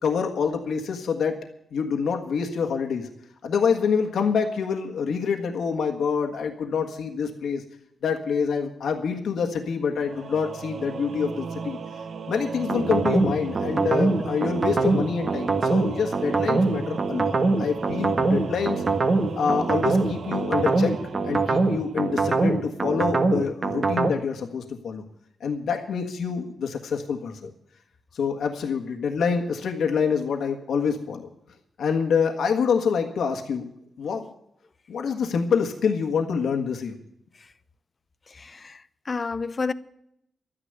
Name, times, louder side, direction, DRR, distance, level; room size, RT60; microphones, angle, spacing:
voice 1, 0.0-1.4 1.7-3.1 3.4-7.6 8.0-11.8 12.3-18.8 19.4-20.9 21.2-25.0 25.4-27.5 28.1-31.3 31.8-33.7 34.0-34.2 34.9-36.9, left 6 dB, 80° left, 1.6 m, -26 dB
Singing / Musical instrument, 10.0-22.5, right 5 dB, 60° right, 1.1 m, -36 dB
sound 1, 12.7-24.1, right 3 dB, 40° right, 1.5 m, -23 dB
voice 2, 38.4-38.7 39.1-39.7, left 4 dB, 35° left, 0.7 m, -29 dB
12.5 x 10.0 x 8.0 m
cardioid pair, 105°, 0 cm